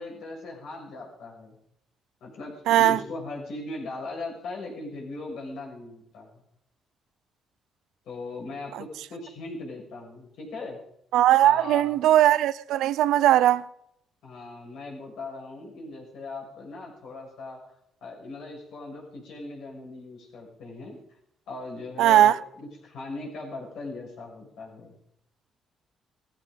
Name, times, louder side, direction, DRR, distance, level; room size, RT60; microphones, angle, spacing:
voice 1, 0.0-1.6 2.2-6.4 8.0-10.8 11.4-12.0 14.2-17.7 18.0-21.0 21.5-25.0, left 2 dB, 80° left, 6.5 m, -39 dB
voice 2, 2.7-3.0 11.1-13.6 22.0-22.3, right 12 dB, 85° right, 0.5 m, -19 dB
17.0 x 14.5 x 5.2 m
cardioid pair, 90°, 0 cm